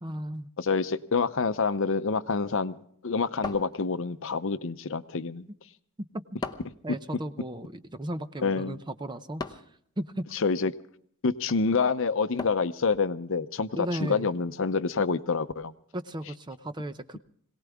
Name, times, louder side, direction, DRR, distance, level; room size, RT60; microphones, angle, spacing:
voice 1, 0.0-0.5 6.1-6.2 6.8-9.6 10.0-10.3 13.8-14.3 15.9-17.2, right 1 dB, 20° right, 11 dB, 0.7 m, -35 dB
voice 2, 0.6-2.7 3.0-5.5 8.4-8.8 10.3-10.7 11.2-15.7, left 4 dB, 60° left, 12 dB, 0.7 m, -27 dB
sound 1, 3.4-4.3 6.4-6.9 9.4-9.8 12.4-12.8, left 4 dB, 20° left, 0.8 m, -37 dB
22.5 x 18.0 x 3.5 m, 0.63 s
head